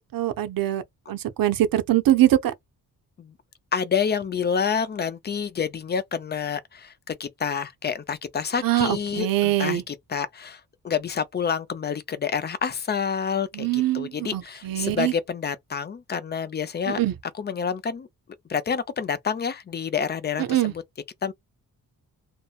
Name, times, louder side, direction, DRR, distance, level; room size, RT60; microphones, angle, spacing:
voice 1, 0.1-0.8 1.1-2.5 8.6-9.8 13.5-15.1 16.9-17.1 20.4-20.7, right 13 dB, 70° right, 0.6 m, -23 dB
voice 2, 3.7-17.0 17.4-18.1 18.5-20.8 21.2-21.3, left 6 dB, 30° left, 0.4 m, -28 dB
2.8 x 2.1 x 2.3 m
wide cardioid pair, 120°, 36 cm